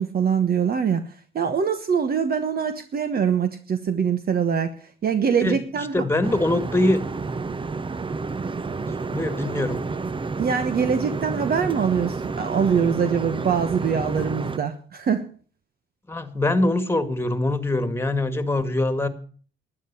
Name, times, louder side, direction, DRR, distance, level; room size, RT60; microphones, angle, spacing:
voice 1, 0.0-4.7 5.0-6.0 10.4-15.3, right 7 dB, 50° right, 8 dB, 1.2 m, -23 dB
voice 2, 5.9-7.0 9.1-9.8 16.1-19.1, left 2 dB, 10° left, 9 dB, 2.0 m, -23 dB
sound 1, 6.2-14.6, right 4 dB, 25° right, 0.8 m, -30 dB
12.5 x 10.0 x 7.0 m, 0.43 s
cardioid pair, 90°, 20 cm